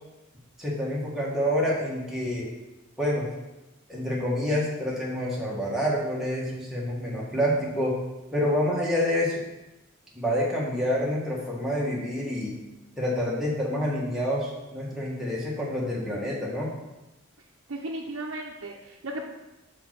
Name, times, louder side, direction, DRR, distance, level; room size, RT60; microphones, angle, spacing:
voice 1, 0.6-2.5 3.0-3.3 3.9-8.0 8.3-9.4 10.1-12.6 13.0-16.7, equal, ahead, -6 dB, 1.6 m, -27 dB
voice 2, 17.7-19.3, right 1 dB, 70° right, -2 dB, 0.7 m, -35 dB
5.6 x 4.5 x 5.9 m, 1.0 s
head